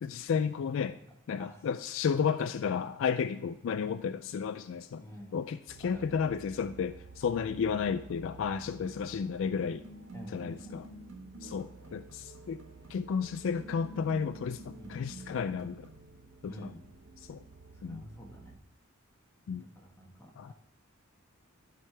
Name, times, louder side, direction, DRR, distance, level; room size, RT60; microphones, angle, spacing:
voice 1, 0.0-1.0 1.3-5.0 5.3-9.8 10.3-10.9 11.4-12.6 12.9-15.9 16.4-16.7 17.2-17.4 17.8-18.0 19.5-19.6 20.4-20.5, left 6 dB, 65° left, 12 dB, 0.3 m, -32 dB
voice 2, 5.0-5.4 5.8-6.2 10.1-10.9 11.8-12.0 14.8-15.0 16.5-16.9 17.7-18.6 19.7-20.5, equal, 15° left, -1 dB, 1.4 m, -49 dB
sound 1, 5.7-18.6, right 4 dB, 65° right, 0.9 m, -54 dB
sound 2, 7.6-16.1, right 1 dB, 90° right, 1.4 m, -50 dB
11.5 x 4.9 x 3.4 m, 0.86 s
head